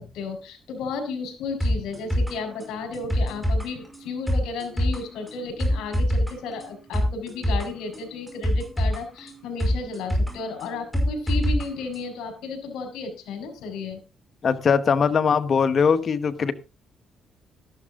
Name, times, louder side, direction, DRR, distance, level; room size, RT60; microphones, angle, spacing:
voice 1, 0.0-14.0, left 4 dB, 85° left, 7 dB, 4.7 m, -33 dB
sound 1, 1.6-11.6 11.9-12.0, equal, ahead, 5.8 m, -26 dB
voice 2, 14.4-16.5, left 6 dB, 50° left, 13 dB, 1.3 m, -21 dB
13.0 x 12.0 x 3.8 m, 0.29 s
cardioid pair, 90°, 0 cm